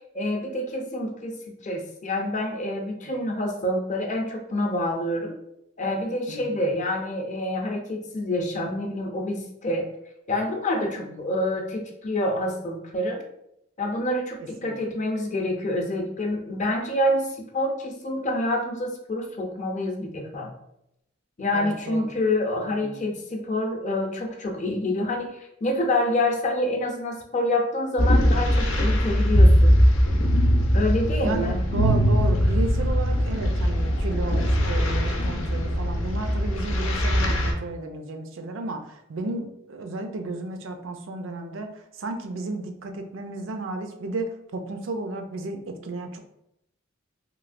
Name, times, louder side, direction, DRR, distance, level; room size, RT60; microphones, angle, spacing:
voice 1, 0.1-5.3 5.8-9.9 10.3-13.2 13.8-20.5 21.4-29.8 30.7-31.6, left 1 dB, 40° left, 2 dB, 0.5 m, -27 dB
voice 2, 14.6-15.0 21.5-22.1 22.6-23.0 31.2-46.2, right 2 dB, 70° right, 6 dB, 0.4 m, -33 dB
sound 1, 28.0-37.5, equal, 85° left, 0.6 m, -21 dB
3.1 x 2.8 x 2.5 m, 0.80 s
head